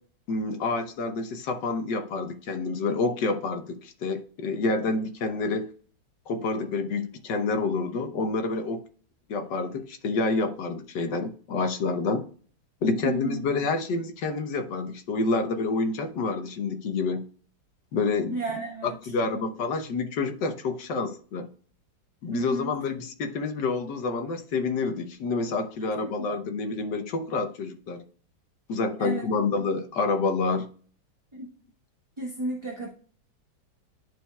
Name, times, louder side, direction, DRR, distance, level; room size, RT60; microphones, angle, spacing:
voice 1, 0.3-5.7 6.3-8.8 9.3-12.2 12.8-17.2 17.9-18.4 18.8-21.5 22.2-28.0 28.7-30.7, left 3 dB, 65° left, 7 dB, 1.5 m, -28 dB
voice 2, 13.0-13.4 18.3-19.0 22.3-22.7 25.8-26.1 29.0-29.2 31.3-31.5 32.2-32.9, right 2 dB, 20° right, -3 dB, 1.0 m, -33 dB
11.0 x 4.7 x 2.3 m, 0.43 s
omnidirectional pair, 2.2 m